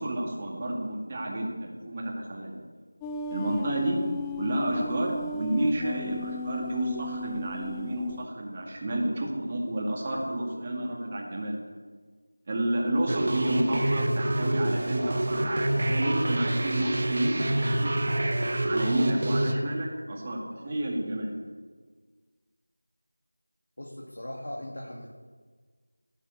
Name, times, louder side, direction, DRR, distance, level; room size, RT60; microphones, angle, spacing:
voice 1, 0.0-2.6 3.3-4.0 4.4-11.6 12.5-18.0 18.7-21.3, right 1 dB, 20° right, -2 dB, 2.2 m, -30 dB
sound 1, 3.0-8.2, left 2 dB, 5° left, 0.3 m, -36 dB
sound 2, 13.1-19.5, right 1 dB, 40° right, 1.3 m, -27 dB
voice 2, 23.8-25.1, left 1 dB, 50° left, -1 dB, 2.1 m, -39 dB
17.5 x 7.4 x 8.0 m, 1.5 s
figure-of-eight pair, 170°, 0 cm